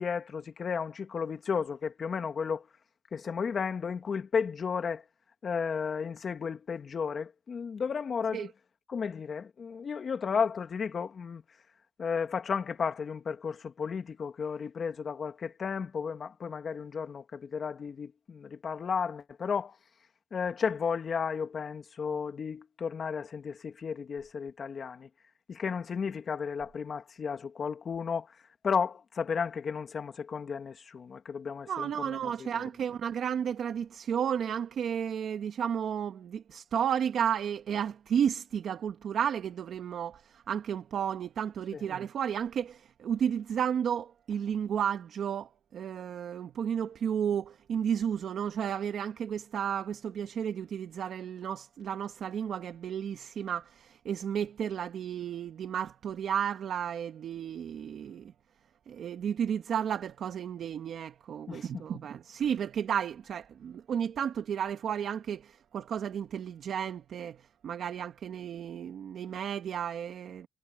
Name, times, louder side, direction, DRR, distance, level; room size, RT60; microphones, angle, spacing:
voice 1, 0.0-2.7 3.1-5.0 5.4-8.5 8.9-11.4 12.0-19.8 20.3-25.1 25.5-28.4 28.6-32.7 41.7-41.8 61.5-61.8, left 6 dB, 45° left, 2.3 m, -33 dB
voice 2, 31.7-58.3 58.9-70.5, right 8 dB, 65° right, 1.5 m, -33 dB
cardioid pair, 90°, 0 cm